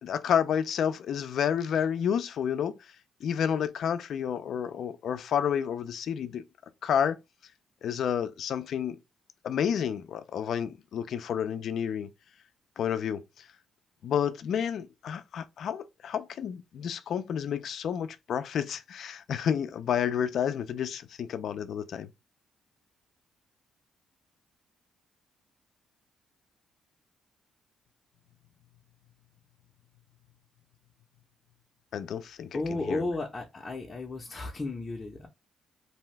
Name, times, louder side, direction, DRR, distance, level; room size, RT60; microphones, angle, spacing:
voice 1, 0.0-2.8 3.2-6.4 6.8-7.2 7.8-9.0 9.4-12.1 12.8-13.5 14.0-22.1 31.9-33.0, left 8 dB, 65° left, 0.4 m, -30 dB
voice 2, 32.5-35.3, left 2 dB, 25° left, 0.6 m, -33 dB
2.6 x 2.2 x 3.2 m
cardioid pair, 90°, 0 cm